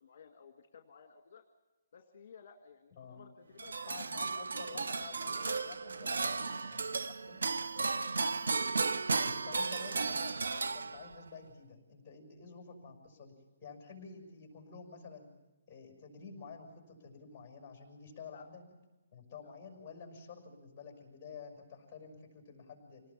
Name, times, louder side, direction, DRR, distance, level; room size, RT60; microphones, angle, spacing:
voice 1, 0.0-1.4 1.9-3.9 7.6-8.4 18.3-18.4 19.4-19.5, left 6 dB, 45° left, 4 dB, 1.7 m, -57 dB
sound 1, 3.6-11.3, right 4 dB, 85° right, 0.7 m, -34 dB
voice 2, 3.9-7.4 9.1-13.3 13.6-15.3 15.7-18.6 19.1-23.0, left 5 dB, 10° left, 1 dB, 5.9 m, -50 dB
27.0 x 19.0 x 7.3 m, 1.1 s
hypercardioid pair, 170°, 0 cm